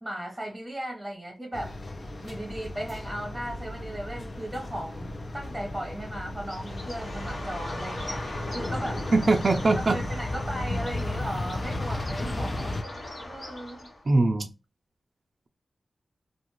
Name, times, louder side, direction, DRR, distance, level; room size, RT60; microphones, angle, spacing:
voice 1, 0.0-1.8 2.2-8.2 8.5-9.1 9.9-12.8 13.3-13.9, right 1 dB, 10° right, 0.9 m, -36 dB
sound 1, 1.5-12.8, left 1 dB, 45° left, 0.5 m, -35 dB
Bird, 6.4-14.1, left 1 dB, 70° left, 1.2 m, -39 dB
voice 2, 9.1-10.0 14.1-14.5, right 3 dB, 50° right, 0.4 m, -21 dB
2.4 x 2.4 x 2.9 m
cardioid pair, 65°, 0 cm